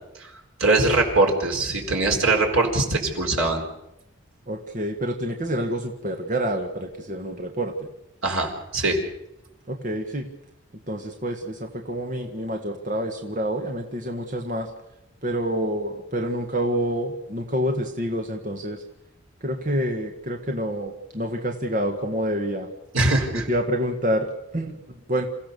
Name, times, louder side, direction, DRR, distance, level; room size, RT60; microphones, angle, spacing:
voice 1, 0.6-3.6 8.2-9.0 22.9-23.4, right 2 dB, 85° right, 1 dB, 4.5 m, -22 dB
voice 2, 4.5-7.9 9.7-10.2 10.9-14.7 15.2-18.8 19.4-22.7 23.3-25.3, equal, 40° right, 3 dB, 1.6 m, -27 dB
28.0 x 16.0 x 6.9 m, 0.87 s
head